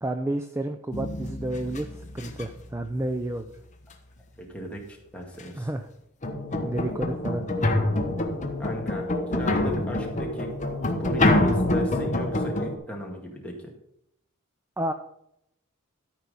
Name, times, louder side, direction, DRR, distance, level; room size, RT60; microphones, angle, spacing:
voice 1, 0.0-3.5 5.5-5.9 6.6-7.5 14.8-14.9, right 1 dB, 10° right, 7 dB, 0.4 m, -30 dB
sound 1, 0.9-2.6 5.4-5.5 6.2-12.7, left 1 dB, 35° left, 1.2 m, -26 dB
voice 2, 4.4-4.8 5.1-5.7 8.6-10.5 11.0-13.7, equal, 5° left, -2 dB, 2.0 m, -36 dB
13.0 x 4.8 x 5.5 m, 0.78 s
head